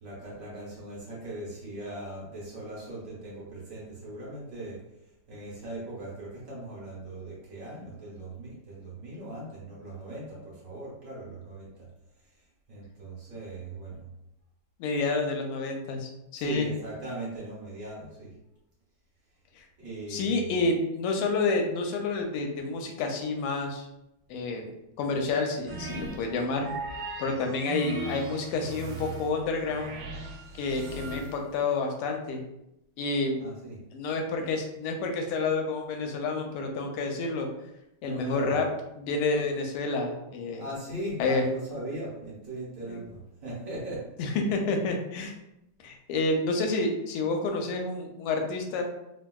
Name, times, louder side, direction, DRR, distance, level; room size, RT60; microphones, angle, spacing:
voice 1, 0.0-4.8 5.3-11.9 12.7-14.1 16.3-18.3 19.8-20.5 33.4-33.8 38.0-38.6 40.6-44.1, right 1 dB, 55° right, -5 dB, 0.9 m, -39 dB
voice 2, 14.8-16.7 19.6-19.7 20.1-23.9 24.3-24.6 25.0-26.7 27.2-30.0 30.6-32.4 33.0-33.4 33.9-37.5 38.0-38.7 39.0-40.6 41.2-41.4 42.9-43.0 44.2-45.3 45.8-48.8, left 3 dB, 85° left, 3 dB, 1.5 m, -29 dB
sound 1, 25.7-31.6, right 3 dB, 75° right, 1.3 m, -38 dB
3.6 x 2.2 x 2.2 m, 0.86 s
omnidirectional pair, 2.4 m